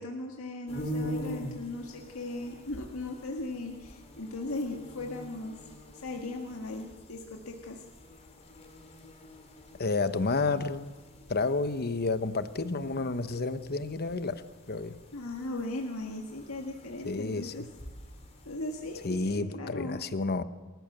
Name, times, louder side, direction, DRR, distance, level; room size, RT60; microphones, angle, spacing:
voice 1, 0.0-5.7 6.0-7.8 15.1-17.6 18.5-20.0, left 2 dB, 80° left, 1 dB, 1.8 m, -38 dB
sound 1, 0.7-19.4, equal, 30° left, 3.2 m, -45 dB
voice 2, 9.8-10.9 11.3-15.0 17.0-17.7 19.0-20.4, left 3 dB, 50° left, 12 dB, 1.0 m, -30 dB
28.5 x 14.0 x 6.7 m, 1.3 s
head